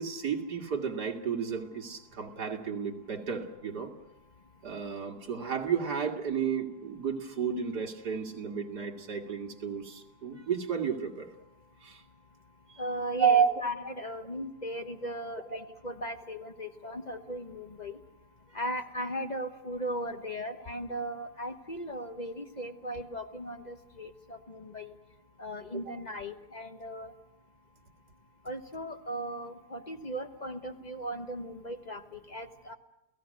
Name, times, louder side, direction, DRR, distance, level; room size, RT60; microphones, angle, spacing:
voice 1, 0.0-3.9 4.6-11.3 11.8-12.0 12.7-12.8 13.2-13.6 25.7-25.8, right 7 dB, 70° right, 2 dB, 2.7 m, -31 dB
voice 2, 12.8-18.0 18.5-24.9 25.4-27.1 28.4-32.7, equal, 30° left, 7 dB, 1.1 m, -37 dB
29.5 x 17.0 x 6.5 m, 0.91 s
omnidirectional pair, 1.8 m